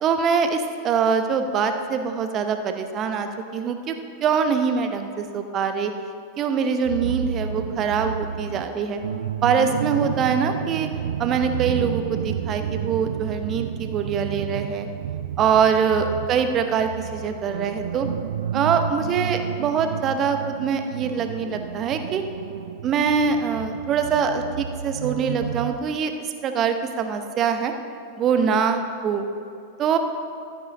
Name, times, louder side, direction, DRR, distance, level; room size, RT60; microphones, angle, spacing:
voice 1, 0.0-5.9 6.4-9.0 9.4-10.9 11.2-14.9 15.4-18.1 18.5-22.2 22.8-26.1 26.4-27.7 28.2-29.3 29.8-30.0, right 6 dB, 30° right, 7 dB, 0.9 m, -23 dB
sound 1, 6.8-25.8, right 8 dB, 60° right, 0.3 m, -31 dB
14.0 x 8.9 x 3.8 m, 2.6 s
figure-of-eight pair, 90°, 0 cm